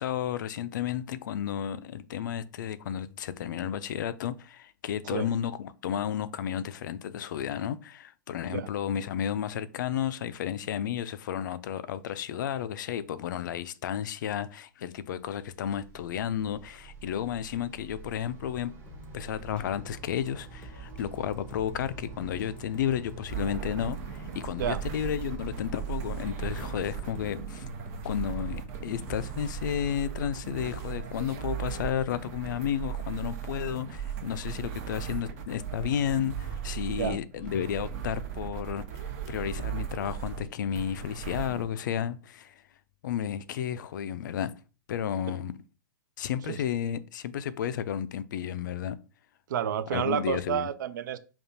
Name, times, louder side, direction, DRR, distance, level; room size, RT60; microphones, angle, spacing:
voice 1, 0.0-18.7 19.1-27.7 28.0-38.8 39.3-42.6 43.0-44.5 44.9-45.5 46.2-49.0 49.9-50.7, left 9 dB, 65° left, 0.4 m, -32 dB
sound 1, 15.2-27.3, right 3 dB, 20° right, 0.9 m, -45 dB
sound 2, 18.9-30.0, left 2 dB, 10° left, 0.6 m, -51 dB
sound 3, 23.3-41.6, right 8 dB, 45° right, 0.8 m, -37 dB
voice 2, 49.5-51.2, right 9 dB, 65° right, 0.4 m, -30 dB
5.2 x 2.4 x 2.7 m
hypercardioid pair, 130°, 11 cm